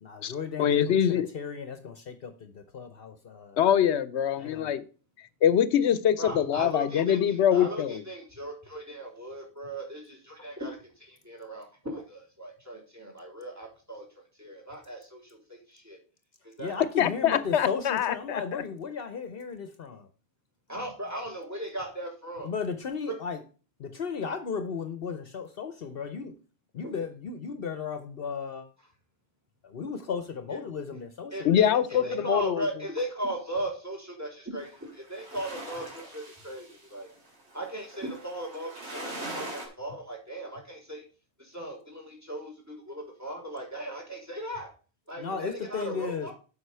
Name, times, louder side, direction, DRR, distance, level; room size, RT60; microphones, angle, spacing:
voice 1, 0.0-3.6 4.4-4.8 16.6-20.1 22.4-23.4 23.8-26.4 26.7-28.7 29.6-32.1 45.2-46.3, left 6 dB, 60° left, 1.0 m, -35 dB
voice 2, 0.6-1.3 3.6-4.8 5.4-8.0 17.0-18.4 31.4-32.6, left 9 dB, 85° left, 1.0 m, -24 dB
voice 3, 6.2-14.0 14.4-16.0 16.4-16.7 20.7-22.5 23.1-23.2 26.8-26.9 30.5-30.6 31.3-37.1 37.5-41.0 41.4-42.5 42.8-44.7 45.1-46.3, right 1 dB, 15° right, 3.5 m, -37 dB
sound 1, 34.6-39.7, right 1 dB, 90° right, 2.8 m, -42 dB
8.0 x 5.4 x 5.5 m
omnidirectional pair, 1.1 m